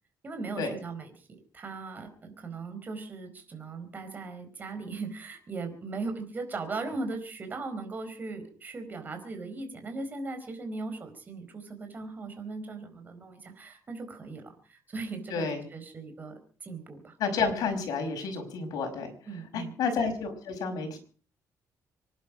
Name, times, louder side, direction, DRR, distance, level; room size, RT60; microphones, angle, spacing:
voice 1, 0.2-1.3 1.5-17.1 19.3-19.7, right 3 dB, 30° right, 7 dB, 4.4 m, -38 dB
voice 2, 15.3-15.6 17.2-19.1 19.5-21.0, left 5 dB, 80° left, 5 dB, 5.5 m, -30 dB
26.0 x 11.5 x 4.9 m, 0.42 s
cardioid pair, 155°, 6 cm